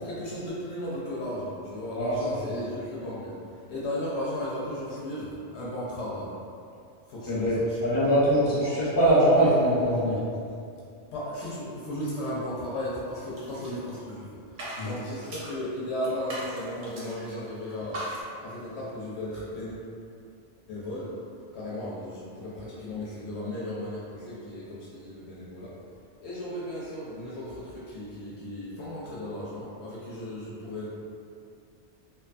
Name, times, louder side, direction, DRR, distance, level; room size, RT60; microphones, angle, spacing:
voice 1, 0.0-6.3 7.1-7.8 8.5-8.7 11.1-18.1 18.4-19.9 20.7-21.2 21.5-25.8 26.2-30.9, left 1 dB, 70° left, -7 dB, 0.8 m, -35 dB
voice 2, 7.3-10.2 14.8-14.9, right 1 dB, 20° left, -10 dB, 0.7 m, -22 dB
sound 1, 13.2-14.2 14.5-15.6 16.0-17.4 17.6-18.2, right 1 dB, 50° right, 0.6 m, -39 dB
2.6 x 2.2 x 2.4 m, 2.4 s
omnidirectional pair, 1.2 m